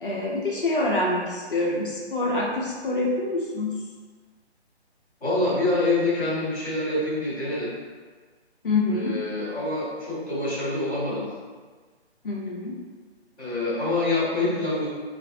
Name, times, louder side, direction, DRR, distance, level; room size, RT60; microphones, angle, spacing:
voice 1, 0.0-3.8 8.6-9.2 12.2-12.8, left 2 dB, 55° left, -4 dB, 0.6 m, -26 dB
voice 2, 5.2-7.7 8.9-11.3 13.4-14.9, left 2 dB, 5° left, -17 dB, 0.9 m, -26 dB
3.9 x 2.5 x 2.5 m, 1.5 s
figure-of-eight pair, 150°, 33 cm